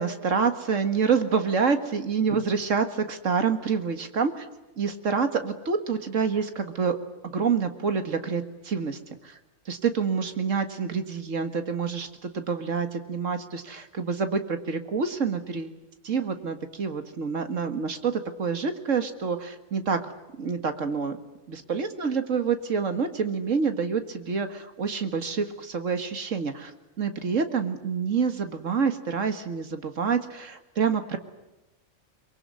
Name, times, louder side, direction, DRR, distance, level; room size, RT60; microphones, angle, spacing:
voice 1, 0.0-4.5 4.8-7.0 7.2-9.0 9.2-9.4 9.7-15.8 16.0-20.1 20.4-21.2 21.5-26.7 27.0-31.2, right 5 dB, 90° right, 8 dB, 2.1 m, -27 dB
24.0 x 23.0 x 9.6 m, 0.99 s
omnidirectional pair, 1.3 m